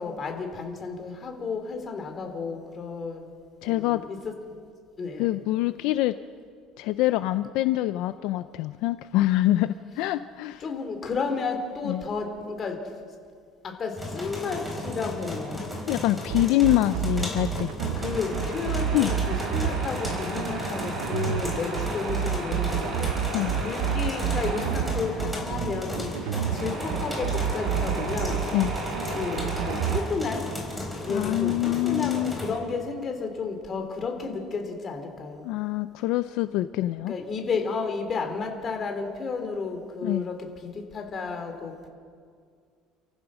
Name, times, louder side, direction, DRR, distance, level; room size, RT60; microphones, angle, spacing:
voice 1, 0.0-3.3 3.7-4.3 5.0-5.3 10.6-12.8 13.6-15.7 17.9-23.1 23.6-26.1 26.5-28.5 29.1-30.5 31.0-35.4 37.1-40.4 40.6-41.9, left 4 dB, 30° left, 4 dB, 2.9 m, -32 dB
voice 2, 3.6-4.0 5.2-6.1 6.8-10.6 11.8-12.0 15.9-17.7 18.9-19.1 23.3-23.5 28.5-28.7 31.1-32.4 35.4-37.1 40.0-40.2, left 16 dB, 70° left, 12 dB, 0.5 m, -25 dB
sound 1, 14.0-32.5, left 1 dB, ahead, 4.0 m, -35 dB
sound 2, 16.3-30.0, right 10 dB, 85° right, 0.7 m, -29 dB
Tools, 18.0-30.0, right 2 dB, 45° right, 5.6 m, -35 dB
29.5 x 15.0 x 6.2 m, 2.1 s
cardioid pair, 150°, 0 cm